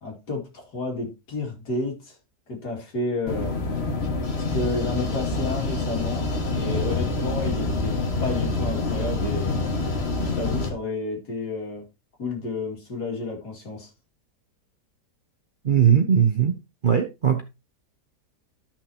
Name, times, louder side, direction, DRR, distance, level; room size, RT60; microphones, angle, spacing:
voice 1, 0.0-2.2 2.5-3.7 4.4-9.6 10.3-11.8 12.2-13.9, left 2 dB, 70° left, 3.1 m, -31 dB
sound 1, 3.3-10.7, left 3 dB, 40° left, 1.7 m, -26 dB
voice 2, 15.6-16.5 16.8-17.4, right 8 dB, 45° right, 0.7 m, -19 dB
12.5 x 6.0 x 2.9 m
omnidirectional pair, 1.8 m